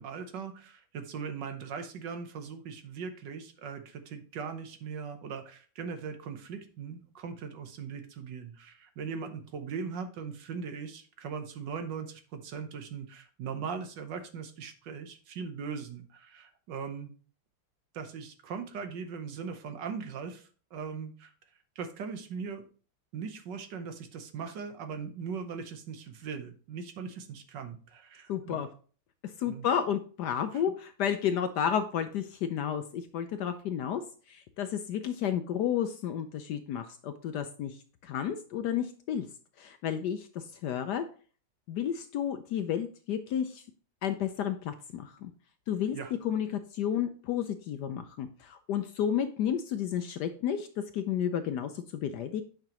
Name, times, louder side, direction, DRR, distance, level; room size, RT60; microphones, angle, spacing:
voice 1, 0.0-17.1 17.9-21.3 21.8-22.6 23.1-28.6 29.5-29.7 30.5-30.6 45.9-46.1, right 6 dB, 65° right, 8 dB, 1.5 m, -40 dB
voice 2, 28.3-28.7 29.4-34.0 34.3-37.8 38.0-39.3 39.6-41.0 41.7-43.6 44.0-45.3 45.7-46.0 46.2-46.5 46.7-50.7 50.9-52.4, left 9 dB, 70° left, 8 dB, 1.0 m, -31 dB
8.8 x 5.8 x 3.0 m, 0.40 s
omnidirectional pair, 2.2 m